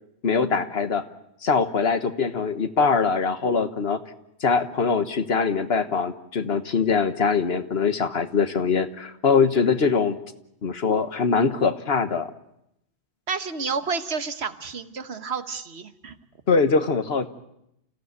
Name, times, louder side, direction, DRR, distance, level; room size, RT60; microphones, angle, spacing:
voice 1, 0.2-1.0 1.4-4.0 4.4-10.2 10.6-12.3 16.5-17.3, left 5 dB, 70° left, 10 dB, 1.5 m, -22 dB
voice 2, 13.3-16.1, right 5 dB, 75° right, 10 dB, 1.5 m, -30 dB
28.0 x 15.5 x 9.5 m, 0.81 s
omnidirectional pair, 1.1 m